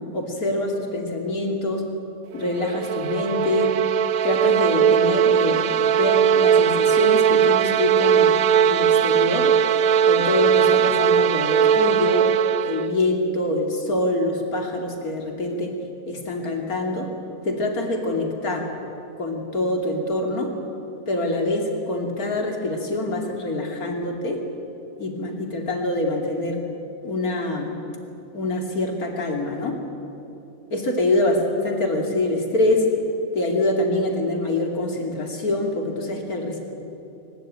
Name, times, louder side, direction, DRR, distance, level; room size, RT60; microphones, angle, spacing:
voice 1, 0.0-1.8 2.3-3.7 4.2-8.3 8.6-9.5 10.1-12.3 12.6-15.7 16.1-17.1 17.4-18.7 19.2-20.5 21.1-24.4 25.0-26.6 27.0-27.7 28.3-29.8 30.7-32.9 33.3-36.6, left 2 dB, 75° left, 2 dB, 3.2 m, -25 dB
sound 1, 2.4-13.0, right 8 dB, 75° right, 1.2 m, -19 dB
22.5 x 21.0 x 8.9 m, 2.9 s
omnidirectional pair, 1.6 m